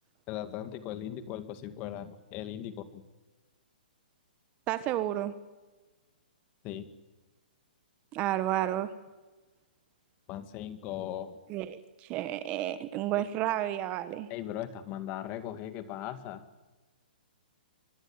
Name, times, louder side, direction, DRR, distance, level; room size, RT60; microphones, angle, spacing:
voice 1, 0.3-3.0 6.6-6.9 10.3-11.4 13.1-13.2 14.3-16.4, left 11 dB, 25° left, 11 dB, 2.2 m, -38 dB
voice 2, 4.7-5.3 8.1-8.9 11.5-11.8 12.1-14.3, right 13 dB, 25° right, 13 dB, 1.3 m, -31 dB
25.0 x 23.5 x 9.0 m, 1.2 s
hypercardioid pair, 155°, 5 cm